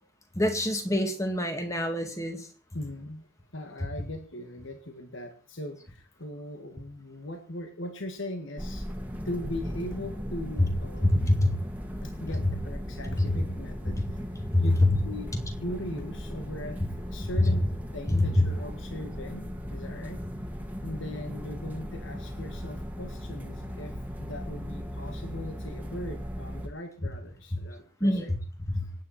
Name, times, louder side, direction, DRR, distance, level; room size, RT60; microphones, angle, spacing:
voice 1, 0.3-2.5 11.4-11.5 11.9-12.0 14.2-14.3 14.5-14.6 18.1-18.5 28.0-28.4 28.7-28.8, left 1 dB, 15° left, 5 dB, 2.1 m, -26 dB
voice 2, 2.7-3.3 3.5-8.9 9.3-11.3 12.0-14.0 14.6-15.3 15.6-17.7 17.9-20.2 20.8-28.3, left 1 dB, 60° left, 5 dB, 1.8 m, -39 dB
sound 1, 8.6-26.7, equal, 10° right, 2.1 m, -37 dB
25.5 x 9.2 x 4.3 m, 0.37 s
head